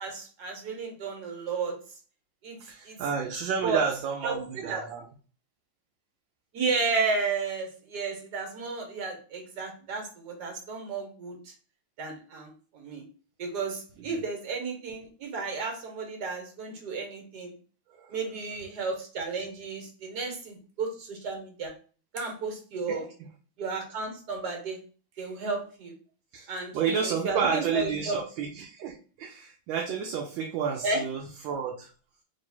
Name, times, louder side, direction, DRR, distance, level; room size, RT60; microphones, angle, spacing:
voice 1, 0.0-1.8 2.4-2.6 2.8-3.0 3.6-3.8 4.2-4.9 6.5-11.5 12.0-13.0 13.4-17.5 18.1-21.7 22.1-23.1 23.6-24.8 25.2-25.9 26.5-28.2 30.8-31.0, right 4 dB, 55° right, 3 dB, 1.7 m, -33 dB
voice 2, 2.6-5.0 14.1-14.2 17.9-18.1 22.9-23.0 26.3-31.9, right 6 dB, 75° right, 2 dB, 1.2 m, -31 dB
3.2 x 3.1 x 4.3 m, 0.39 s
omnidirectional pair, 2.4 m